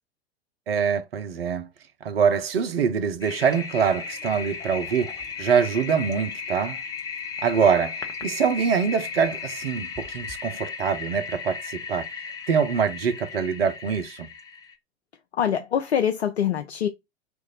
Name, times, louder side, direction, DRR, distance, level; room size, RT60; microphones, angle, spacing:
voice 1, 0.7-1.7 2.0-5.1 5.4-6.8 7.4-12.1 12.5-14.3, right 6 dB, 60° right, 0.7 m, -24 dB
Toilet flush, 3.2-14.8, left 6 dB, 10° left, 0.5 m, -36 dB
voice 2, 15.3-16.9, left 9 dB, 75° left, 0.5 m, -24 dB
3.0 x 2.6 x 3.8 m
figure-of-eight pair, 90°, 33 cm